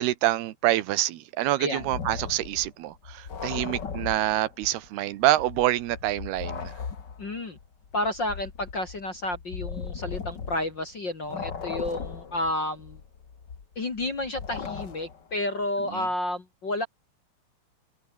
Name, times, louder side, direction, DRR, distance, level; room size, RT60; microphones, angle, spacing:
voice 1, 0.0-6.7 15.9-16.1, right 15 dB, 70° right, 2.7 m, -26 dB
sound 1, 1.8-4.9 5.2-10.9 11.2-15.3, left 6 dB, 65° left, 1.0 m, -38 dB
voice 2, 7.2-7.6 7.9-13.0 13.8-16.9, left 1 dB, 35° left, 1.9 m, -31 dB
omnidirectional pair, 5.6 m